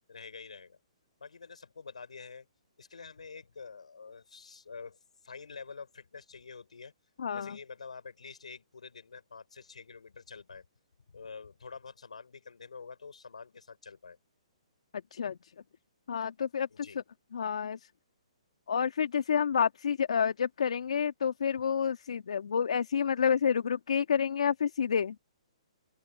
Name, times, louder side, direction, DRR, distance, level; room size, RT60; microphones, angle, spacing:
voice 1, 0.1-0.8 1.2-2.5 2.8-6.9 7.3-10.6 11.1-14.2 16.7-17.0, left 5 dB, 85° left, 5.9 m, -47 dB
voice 2, 7.2-7.6 15.1-15.4 16.1-16.9 17.3-17.8 18.7-25.2, left 7 dB, 70° left, 1.7 m, -29 dB
open air
hypercardioid pair, 145°, 4 cm